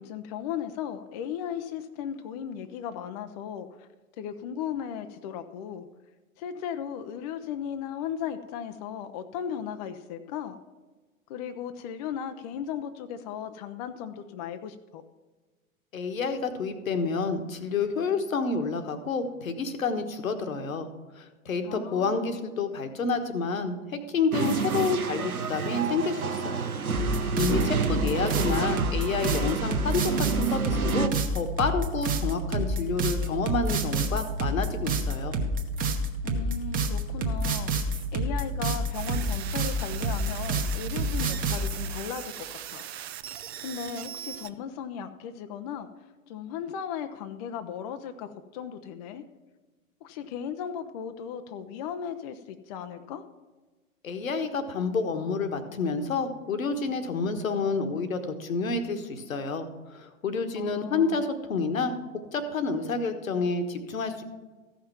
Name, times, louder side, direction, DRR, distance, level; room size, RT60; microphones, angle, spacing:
voice 1, 0.0-3.9 4.2-5.9 6.4-10.6 11.3-15.0 21.6-22.3 36.2-42.9 43.6-49.2 50.0-53.2 60.6-61.2, left 8 dB, 30° left, 8 dB, 0.5 m, -36 dB
voice 2, 15.9-20.9 21.1-26.7 27.4-35.4 54.0-64.2, left 4 dB, 70° left, 8 dB, 1.3 m, -29 dB
sound 1, 24.3-31.1, right 6 dB, 90° right, 0.7 m, -29 dB
sound 2, 26.9-41.8, right 1 dB, 20° right, 1.0 m, -28 dB
sound 3, 38.9-44.5, right 11 dB, 50° right, 0.6 m, -40 dB
14.0 x 5.8 x 5.9 m, 1.3 s
figure-of-eight pair, 105°, 42 cm